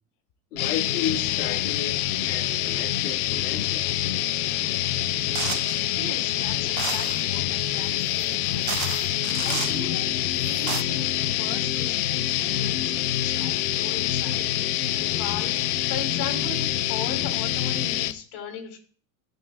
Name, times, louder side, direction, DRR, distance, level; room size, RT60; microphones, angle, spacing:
voice 1, 0.5-3.8, left 8 dB, 85° left, 2.0 m, -33 dB
sound 1, 0.6-18.1, left 13 dB, 70° left, 1.0 m, -26 dB
sound 2, 5.4-5.8 6.8-7.2 8.2-8.3 8.7-9.8 10.4-10.8, right 15 dB, 75° right, 0.7 m, -32 dB
voice 2, 5.9-9.0 9.4-15.5 15.9-18.8, left 5 dB, 50° left, 4.4 m, -38 dB
17.5 x 6.5 x 2.4 m
supercardioid pair, 125°, 45 cm